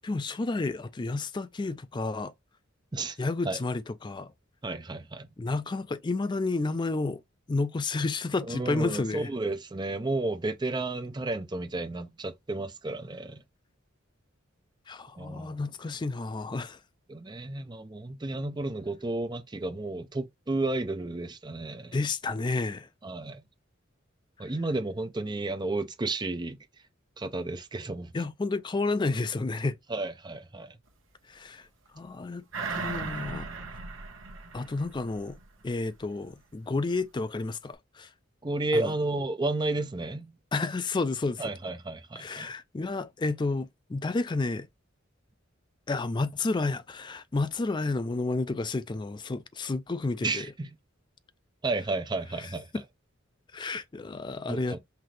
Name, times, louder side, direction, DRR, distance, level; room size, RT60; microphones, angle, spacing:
voice 1, 0.0-2.3 3.2-4.3 5.4-7.2 7.5-9.3 14.9-16.8 21.9-22.9 24.4-24.5 28.1-29.8 31.3-31.7 31.9-32.4 32.7-33.5 34.5-35.4 35.6-38.1 38.7-38.9 40.5-41.5 42.2-44.7 45.9-50.5 52.7-52.8 53.5-54.8, left 3 dB, 20° left, 0.4 m, -31 dB
voice 2, 4.6-5.3 8.5-13.4 15.2-15.5 17.1-22.0 23.0-23.4 24.4-26.6 27.2-28.1 29.9-30.8 38.4-40.3 41.4-42.5 50.2-50.7 51.6-52.8 54.5-54.8, right 2 dB, 20° right, 0.6 m, -32 dB
sound 1, 32.5-35.4 35.8-35.9, right 4 dB, 70° right, 1.1 m, -37 dB
5.8 x 2.7 x 3.2 m
head